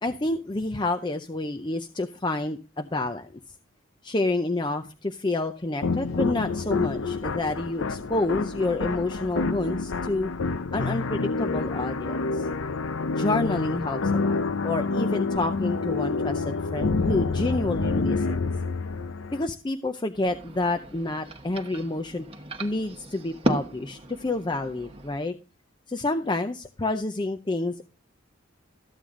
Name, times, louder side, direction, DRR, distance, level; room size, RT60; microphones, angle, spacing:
voice 1, 0.0-3.3 4.0-10.3 10.7-12.5 13.1-18.5 19.3-22.2 22.6-25.4 25.9-27.8, left 2 dB, 20° left, 6 dB, 0.5 m, -29 dB
sound 1, 5.8-19.5, left 4 dB, 75° left, 0.7 m, -28 dB
sound 2, 20.1-25.2, right 1 dB, 25° right, 1.1 m, -34 dB
14.0 x 8.8 x 3.7 m, 0.32 s
head